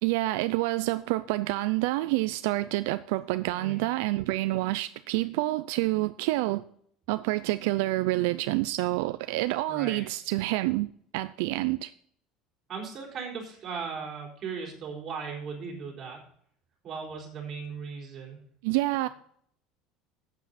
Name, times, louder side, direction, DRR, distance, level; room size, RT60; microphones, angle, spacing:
voice 1, 0.0-6.6 7.1-11.9 18.6-19.1, right 18 dB, 80° right, 0.4 m, -28 dB
voice 2, 3.4-3.8 9.7-10.0 12.7-16.2 16.8-18.4, right 5 dB, 30° right, 3.9 m, -37 dB
12.0 x 8.2 x 4.2 m
cardioid pair, 170°, 0 cm